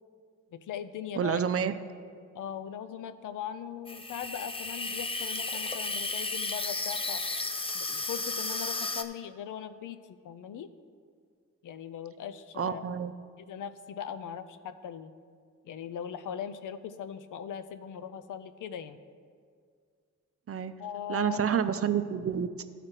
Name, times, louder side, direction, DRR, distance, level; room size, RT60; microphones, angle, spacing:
voice 1, 0.5-1.4 2.3-7.2 7.7-10.0 10.2-10.7 11.6-12.8 13.4-15.1 15.6-19.0 20.8-21.4, left 8 dB, 90° left, 12 dB, 0.5 m, -39 dB
voice 2, 1.2-1.7 12.6-13.1 20.5-20.7 21.1-22.6, right 8 dB, 50° right, 11 dB, 0.5 m, -29 dB
Water tap faucet / Sink (filling or washing), 3.9-9.0, left 3 dB, 20° left, 0.5 m, -33 dB
13.5 x 5.0 x 4.4 m, 2.1 s
cardioid pair, 75°, 30 cm